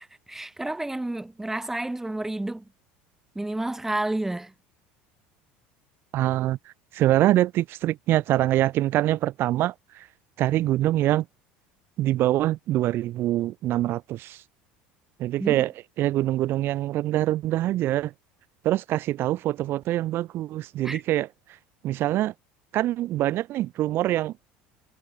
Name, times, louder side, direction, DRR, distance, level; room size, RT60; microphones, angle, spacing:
voice 1, 0.0-2.7 3.3-4.5 15.4-15.6 20.8-21.0, right 2 dB, 5° right, 1.2 m, -30 dB
voice 2, 6.1-6.6 6.9-10.1 10.4-11.3 12.0-14.4 15.2-15.7 16.0-18.1 18.6-21.3 21.8-22.3 22.7-24.3, right 14 dB, 50° right, 0.5 m, -24 dB
supercardioid pair, 105°, 5 cm